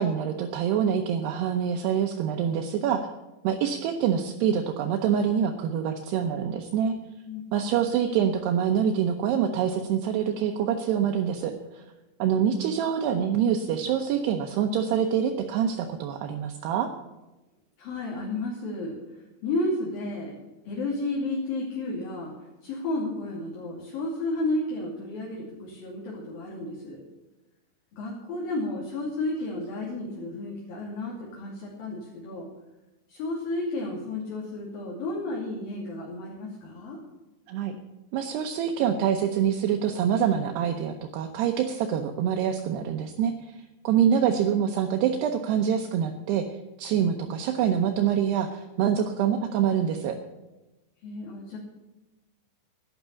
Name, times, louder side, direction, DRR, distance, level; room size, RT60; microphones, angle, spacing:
voice 1, 0.0-3.1 3.4-7.0 7.5-11.8 12.2-16.9 37.5-37.8 38.1-46.4 46.8-50.1, right 8 dB, 75° right, 4 dB, 2.8 m, -25 dB
voice 2, 17.8-20.3 20.7-22.3 22.6-27.0 27.9-32.5 33.1-37.0 43.9-44.2 51.0-51.6, left 2 dB, 55° left, -4 dB, 4.2 m, -32 dB
12.0 x 10.0 x 8.2 m, 1.1 s
omnidirectional pair, 5.1 m